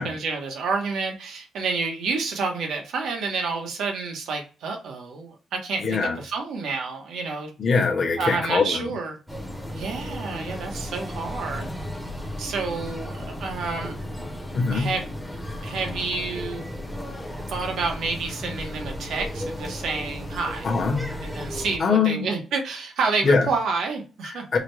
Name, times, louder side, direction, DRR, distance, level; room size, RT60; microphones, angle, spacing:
voice 1, 0.0-7.5 8.2-9.2 9.7-11.7 12.4-14.0 14.7-15.1 15.6-16.7 17.5-20.7 21.2-24.5, right 4 dB, 80° right, 0.9 m, -29 dB
voice 2, 5.8-6.2 7.6-8.9 14.5-14.9 20.6-21.0 21.8-22.3 23.2-23.5 24.5-24.6, left 4 dB, 40° left, 0.8 m, -22 dB
sound 1, 9.3-21.8, left 1 dB, 5° right, 0.7 m, -34 dB
4.8 x 2.2 x 3.1 m
cardioid pair, 150°, 0 cm